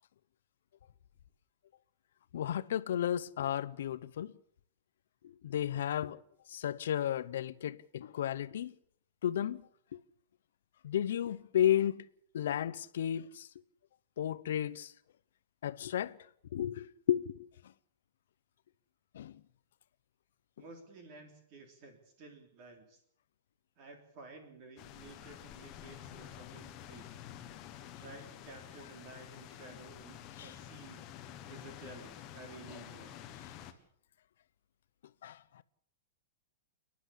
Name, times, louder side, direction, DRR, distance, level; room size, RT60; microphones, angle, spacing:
voice 1, 2.3-4.3 5.4-6.2 6.5-8.7 9.2-9.6 9.9-10.0 10.8-12.0 12.3-13.5 14.2-14.9 15.6-16.2 16.5-17.5 19.1-19.3 30.4-30.5 35.2-35.4, left 10 dB, 70° left, 0.7 m, -33 dB
voice 2, 20.6-23.0 23.8-27.2 28.0-31.1 31.5-33.2, right 3 dB, 30° right, 3.5 m, -53 dB
sound 1, 24.8-33.7, left 11 dB, 25° left, 1.4 m, -49 dB
29.0 x 10.5 x 8.4 m
supercardioid pair, 175°, 0 cm